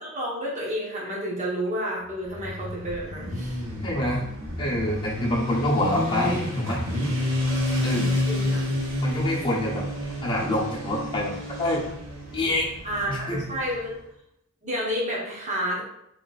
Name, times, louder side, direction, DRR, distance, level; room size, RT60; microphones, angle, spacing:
voice 1, 0.0-3.6 7.8-8.6 12.8-13.9 14.6-15.8, equal, 35° right, -4 dB, 1.2 m, -30 dB
Motorcycle, 2.2-13.9, left 1 dB, 75° right, 1.5 m, -29 dB
voice 2, 3.8-4.3 4.6-6.8 7.8-8.2 9.0-9.8 10.2-11.9 12.3-12.7 13.1-13.4, left 1 dB, 25° left, -5 dB, 1.0 m, -26 dB
3.2 x 2.9 x 4.1 m, 0.77 s
head